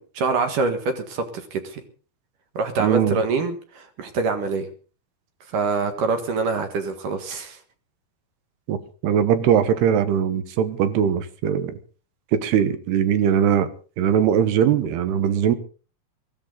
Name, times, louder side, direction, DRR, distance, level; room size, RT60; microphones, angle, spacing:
voice 1, 0.1-1.8 2.5-4.7 5.5-7.6, right 4 dB, 60° right, 7 dB, 3.1 m, -25 dB
voice 2, 2.8-3.2 8.7-8.8 9.0-11.7 12.3-13.7 14.0-15.6, right 9 dB, 90° right, 12 dB, 3.4 m, -20 dB
22.0 x 14.5 x 4.0 m, 0.38 s
omnidirectional pair, 4.5 m